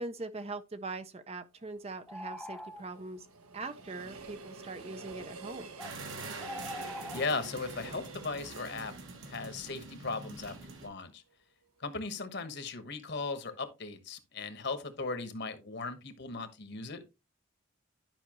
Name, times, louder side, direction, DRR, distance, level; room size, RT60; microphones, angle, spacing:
voice 1, 0.0-3.3 3.5-5.7, right 3 dB, 30° right, 0.5 m, -41 dB
Train, 1.6-10.6 11.0-11.1, right 3 dB, 90° right, 1.2 m, -49 dB
sound 1, 2.1-3.0 5.8-5.9 6.4-7.3, left 1 dB, ahead, 0.8 m, -42 dB
sound 2, 5.8-10.9, right 3 dB, 60° right, 1.4 m, -45 dB
voice 2, 7.1-8.9 9.2-11.2 11.8-17.0, left 4 dB, 50° left, 1.2 m, -37 dB
11.0 x 5.6 x 3.0 m
head